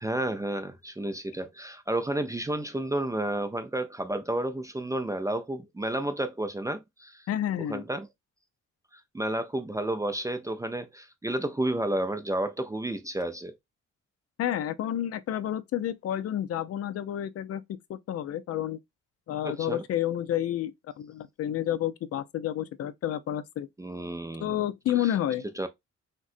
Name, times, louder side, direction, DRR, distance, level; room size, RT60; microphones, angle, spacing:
voice 1, 0.0-7.2 7.7-8.1 8.9-13.6 19.4-19.8 23.8-24.5 25.0-25.1 25.6-25.7, right 1 dB, 10° right, 0.4 m, -31 dB
voice 2, 7.3-7.8 14.4-17.6 17.9-18.8 19.3-23.7 24.4-25.5, left 11 dB, 55° left, 0.4 m, -30 dB
3.5 x 2.2 x 2.4 m
cardioid pair, 90°, 30 cm